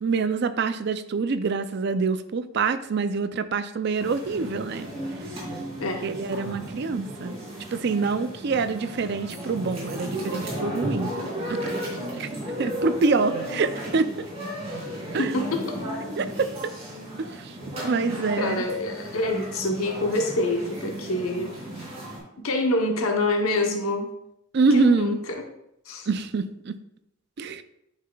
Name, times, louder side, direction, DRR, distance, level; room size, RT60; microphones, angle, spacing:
voice 1, 0.0-4.9 6.0-7.3 7.7-11.1 11.5-11.6 12.2-12.3 12.6-14.3 15.1-15.3 16.2-16.5 17.2-17.5 17.8-18.6 24.5-25.2 26.1-26.8 27.4-27.6, right 4 dB, 50° right, 11 dB, 0.4 m, -25 dB
sound 1, 4.0-22.2, right 1 dB, 30° right, 2.9 m, -34 dB
voice 2, 5.8-6.1 15.2-15.8 18.4-21.8 22.4-24.1 24.7-25.4 25.9-26.1, left 2 dB, 85° left, 3 dB, 0.9 m, -26 dB
10.5 x 5.7 x 2.3 m, 0.80 s
head